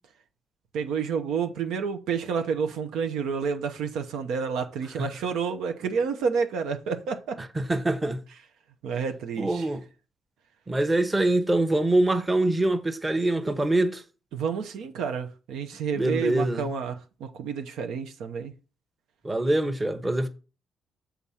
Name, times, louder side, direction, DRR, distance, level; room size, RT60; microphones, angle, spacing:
voice 1, 0.7-7.4 8.8-9.7 14.3-18.5, right 6 dB, 85° right, 0.8 m, -29 dB
voice 2, 7.4-8.2 9.4-9.8 10.7-14.0 15.9-16.7 19.2-20.3, right 2 dB, 20° right, 0.9 m, -24 dB
7.1 x 3.6 x 5.6 m
cardioid pair, 90°, 0 cm